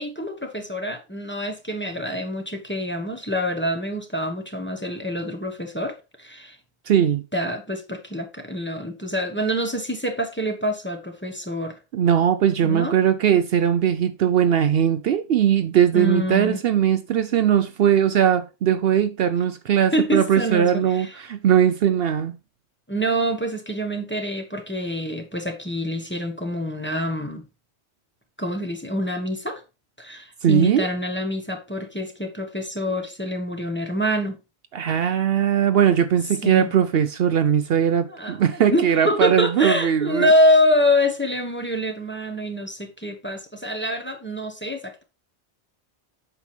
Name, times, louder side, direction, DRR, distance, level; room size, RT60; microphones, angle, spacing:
voice 1, 0.0-6.6 7.3-11.8 12.6-13.0 15.9-16.6 19.9-21.2 22.9-27.4 28.4-29.6 30.0-34.4 36.4-36.7 38.1-45.0, equal, 10° left, 1.2 m, -25 dB
voice 2, 6.9-7.2 11.9-22.4 30.4-30.9 34.7-40.3, right 9 dB, 65° right, 0.8 m, -20 dB
8.2 x 5.9 x 3.3 m
omnidirectional pair, 1.1 m